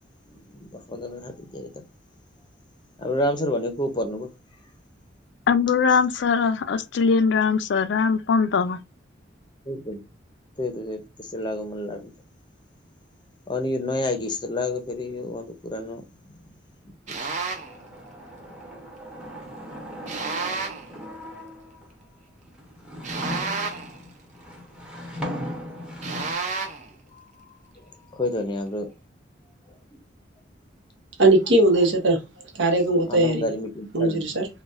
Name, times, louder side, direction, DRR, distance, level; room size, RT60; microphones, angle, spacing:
voice 1, 0.3-1.8 3.0-4.3 9.7-10.0 10.6-12.1 13.5-16.1 27.8-27.9 28.1-28.9 33.1-34.3, left 1 dB, 25° left, 0.6 m, -29 dB
voice 2, 5.5-8.8, left 5 dB, 65° left, 0.4 m, -21 dB
sound 1, 17.1-17.8 20.1-20.9 23.0-24.0 26.0-26.9, right 4 dB, 40° right, 0.6 m, -30 dB
sound 2, 17.5-21.9 22.5-26.3, equal, 5° right, 0.8 m, -37 dB
voice 3, 31.2-32.2 32.5-33.5 33.9-34.5, right 2 dB, 75° right, 0.9 m, -19 dB
3.9 x 2.2 x 2.4 m
head